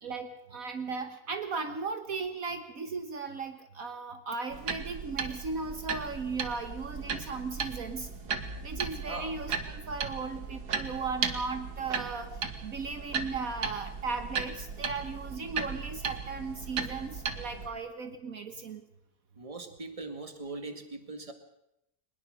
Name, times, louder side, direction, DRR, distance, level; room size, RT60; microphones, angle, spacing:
voice 1, 0.0-8.1 8.6-18.8, right 4 dB, 60° right, 8 dB, 1.7 m, -36 dB
sound 1, 4.5-17.7, right 5 dB, 85° right, 2.1 m, -36 dB
voice 2, 19.4-21.3, right 3 dB, 20° right, 7 dB, 2.1 m, -40 dB
22.5 x 20.5 x 6.6 m, 0.84 s
omnidirectional pair, 1.7 m